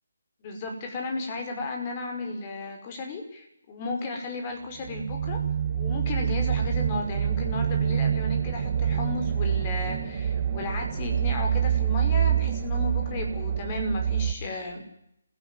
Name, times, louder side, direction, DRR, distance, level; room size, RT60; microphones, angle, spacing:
voice 1, 0.4-5.4 5.7-14.8, left 2 dB, 30° left, 4 dB, 5.8 m, -34 dB
sound 1, 4.8-14.3, right 9 dB, 35° right, 3.0 m, -26 dB
27.0 x 17.0 x 9.5 m, 0.79 s
figure-of-eight pair, 155°, 0 cm